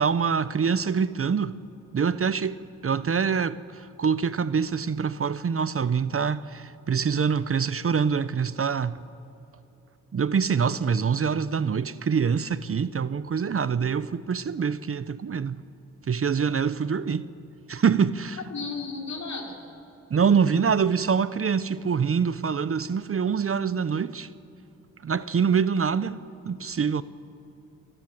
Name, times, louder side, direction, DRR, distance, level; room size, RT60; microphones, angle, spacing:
voice 1, 0.0-1.6 1.9-9.0 10.1-15.6 16.1-17.3 17.7-18.4 20.1-24.3 25.0-27.0, right 6 dB, 40° right, 0.8 m, -25 dB
voice 2, 18.5-19.6, left 4 dB, 55° left, 4.5 m, -34 dB
28.0 x 19.0 x 7.5 m
supercardioid pair, 55°, 33 cm